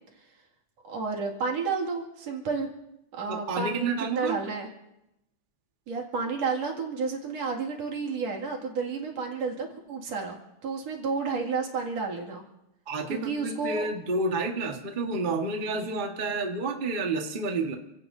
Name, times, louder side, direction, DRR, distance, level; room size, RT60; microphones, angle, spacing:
voice 1, 0.8-2.7 3.1-4.7 5.9-12.4 13.1-13.9, right 4 dB, 60° right, 0 dB, 3.2 m, -31 dB
voice 2, 3.3-4.4 12.9-17.7, right 3 dB, 85° right, 2 dB, 0.4 m, -30 dB
28.5 x 16.5 x 2.7 m, 0.88 s
omnidirectional pair, 3.6 m